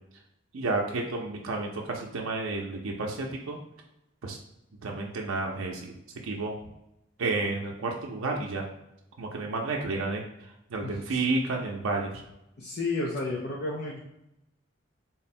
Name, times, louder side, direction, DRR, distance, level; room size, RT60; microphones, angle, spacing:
voice 1, 0.5-3.6 4.2-4.4 4.8-5.9 6.2-6.6 7.2-8.7 9.2-12.2, right 3 dB, 85° right, 0 dB, 0.5 m, -31 dB
voice 2, 10.8-11.2 12.6-14.0, left 2 dB, 50° left, -3 dB, 0.5 m, -32 dB
3.8 x 2.1 x 4.2 m, 0.87 s
head